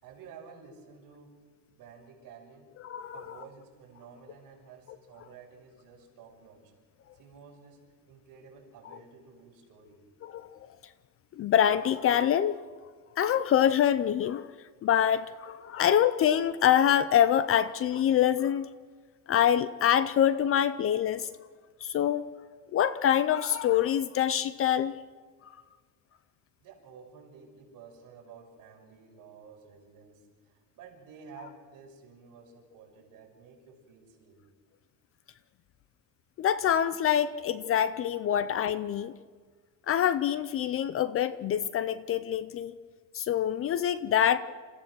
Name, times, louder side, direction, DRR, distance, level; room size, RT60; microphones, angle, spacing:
voice 1, 0.0-2.7 3.1-6.7 7.1-10.0 26.6-34.4, right 5 dB, 60° right, -1 dB, 6.1 m, -52 dB
voice 2, 2.8-3.4 10.2-10.7 11.4-12.6 13.2-14.5 14.8-18.7 19.3-21.3 21.8-22.5 22.7-25.0 25.4-25.5 36.4-39.2 39.9-42.7 43.1-44.4, left 10 dB, 35° left, 15 dB, 0.5 m, -25 dB
28.0 x 15.0 x 6.2 m, 1.5 s
cardioid pair, 160°, 38 cm